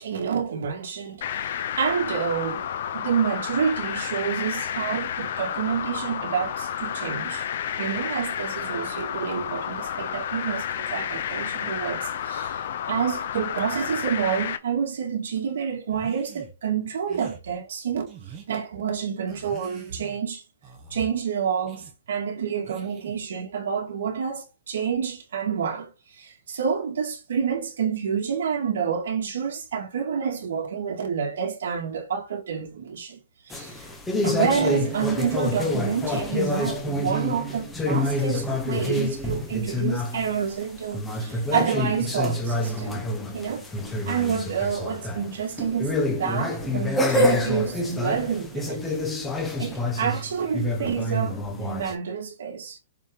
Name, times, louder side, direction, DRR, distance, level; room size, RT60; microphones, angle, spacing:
voice 1, 0.0-7.4 7.8-18.1 18.5-20.4 20.9-25.9 26.2-33.2 33.5-33.8 34.2-43.7 44.1-49.0 49.6-52.8, right 7 dB, 65° right, 2.2 m, -28 dB
sound 1, 1.2-14.6, left 9 dB, 50° left, 0.6 m, -31 dB
sound 2, 15.9-16.5 17.1-17.4 18.1-18.6 19.3-20.2 20.6-21.1 21.7-21.9 22.6-23.3, right 7 dB, 15° right, 1.5 m, -45 dB
sound 3, 33.5-51.9, left 1 dB, 5° left, 0.9 m, -27 dB
7.2 x 3.7 x 3.8 m
hypercardioid pair, 175°, 0 cm